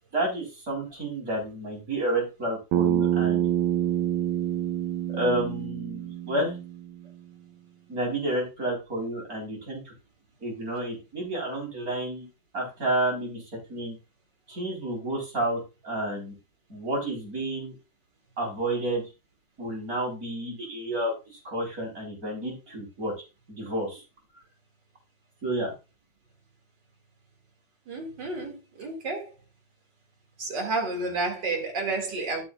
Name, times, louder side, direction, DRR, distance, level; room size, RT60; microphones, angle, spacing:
voice 1, 0.1-3.5 5.1-6.6 7.9-9.9 10.4-12.3 12.5-13.4 13.7-13.9 14.5-16.3 16.7-17.7 18.4-19.0 19.6-23.1 23.5-24.0 25.4-25.7, right 1 dB, 45° right, 4.6 m, -30 dB
Bass guitar, 2.7-7.0, right 11 dB, 85° right, 1.5 m, -27 dB
voice 2, 27.9-29.3 30.4-32.4, right 3 dB, 60° right, 3.0 m, -30 dB
13.5 x 6.9 x 2.4 m
omnidirectional pair, 2.2 m